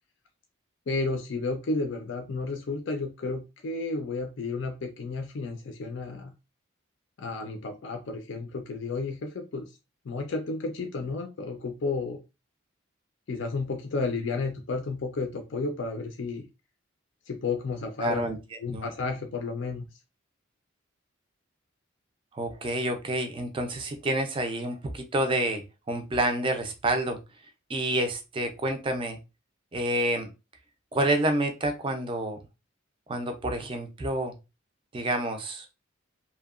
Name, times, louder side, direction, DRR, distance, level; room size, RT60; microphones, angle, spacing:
voice 1, 0.9-6.3 7.2-9.7 10.0-12.2 13.3-16.4 17.3-18.2 18.6-19.8, left 3 dB, 60° left, 4 dB, 0.4 m, -32 dB
voice 2, 18.0-18.9 22.3-27.2 27.7-29.2 29.7-30.3 30.9-32.4 33.1-34.4 34.9-35.7, right 1 dB, 25° right, 6 dB, 0.4 m, -28 dB
2.7 x 2.1 x 2.3 m, 0.26 s
head